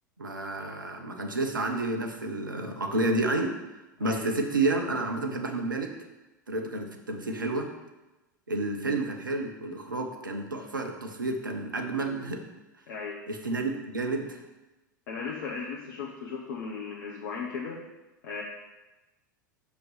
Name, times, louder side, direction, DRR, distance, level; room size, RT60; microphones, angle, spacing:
voice 1, 0.2-3.6 4.0-5.9 6.5-7.7 8.5-12.4 13.3-14.4, right 2 dB, 80° right, 4 dB, 1.1 m, -30 dB
voice 2, 4.0-4.4 12.9-13.3 15.1-17.8 18.2-18.4, left 5 dB, 55° left, -1 dB, 1.1 m, -36 dB
6.1 x 5.4 x 6.8 m, 1.1 s
figure-of-eight pair, 85°, 11 cm